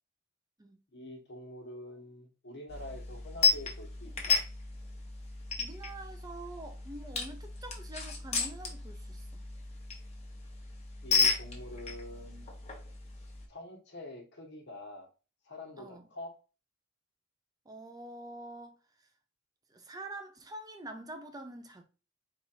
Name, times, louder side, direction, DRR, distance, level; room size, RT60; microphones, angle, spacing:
voice 1, 0.9-4.4 11.0-12.5 13.5-15.1 15.4-16.4, left 1 dB, 55° left, 1.3 m, -46 dB
sound 1, 2.7-13.5, left 4 dB, 30° left, 1.0 m, -34 dB
voice 2, 5.6-9.4 15.8-16.1 17.7-19.1 19.7-21.8, right 2 dB, 20° right, 0.5 m, -46 dB
4.2 x 2.4 x 4.4 m
head